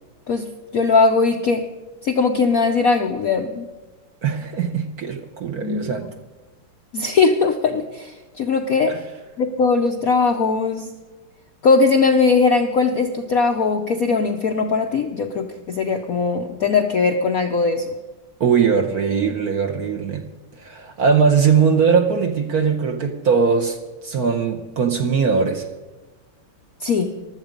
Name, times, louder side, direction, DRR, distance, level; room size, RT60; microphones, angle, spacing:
voice 1, 0.3-1.7 2.0-3.7 5.6-5.9 6.9-9.0 9.4-10.9 11.6-17.9 26.8-27.1, left 4 dB, 65° left, 5 dB, 0.9 m, -19 dB
voice 2, 4.2-6.1 8.9-9.0 18.4-20.3 20.6-23.8 24.0-25.7, right 6 dB, 55° right, 5 dB, 1.1 m, -20 dB
15.0 x 12.0 x 5.2 m, 1.2 s
omnidirectional pair, 2.4 m